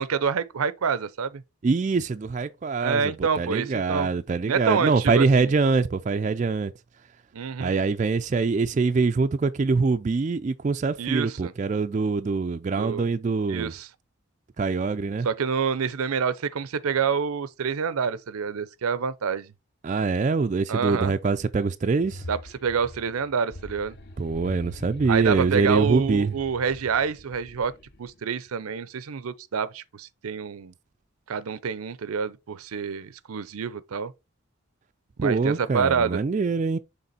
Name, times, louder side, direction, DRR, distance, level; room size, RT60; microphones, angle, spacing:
voice 1, 0.0-1.4 2.8-4.1 4.5-5.5 7.3-7.7 11.0-11.5 12.8-13.0 13.5-13.9 15.2-19.5 20.7-21.1 22.3-24.0 25.1-27.7 28.0-30.7 31.3-34.1 35.2-36.2, right 6 dB, 85° right, 0.5 m, -27 dB
voice 2, 1.6-6.7 7.6-13.7 14.6-15.3 19.8-22.2 24.2-26.3 35.2-36.8, right 4 dB, 35° right, 0.3 m, -24 dB
sound 1, 22.0-28.2, left 1 dB, 50° left, 0.7 m, -43 dB
6.6 x 3.6 x 4.1 m
head